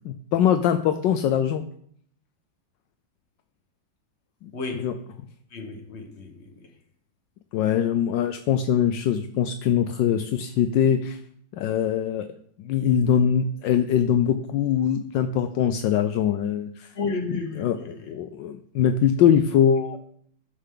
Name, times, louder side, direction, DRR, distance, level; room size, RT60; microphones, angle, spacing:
voice 1, 0.0-1.6 4.4-4.5 4.8-4.9 7.5-11.2 11.5-12.3 12.6-16.9 17.6-20.0, left 9 dB, 75° left, 1.3 m, -22 dB
voice 2, 4.5-5.0 5.5-6.7 16.9-18.1, left 3 dB, 40° left, 1.6 m, -33 dB
13.0 x 6.7 x 3.9 m
omnidirectional pair, 2.0 m